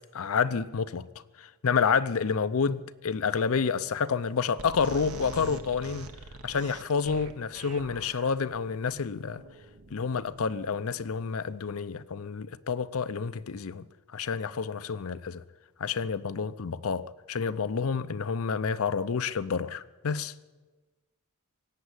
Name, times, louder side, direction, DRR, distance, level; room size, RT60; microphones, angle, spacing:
voice 1, 0.1-1.1 1.4-6.1 6.4-9.4 9.9-13.9 14.1-15.4 15.8-20.3, left 5 dB, 70° left, 0.6 m, -29 dB
sound 1, 4.6-11.0, right 3 dB, 80° right, 1.2 m, -44 dB
18.0 x 8.2 x 9.6 m
head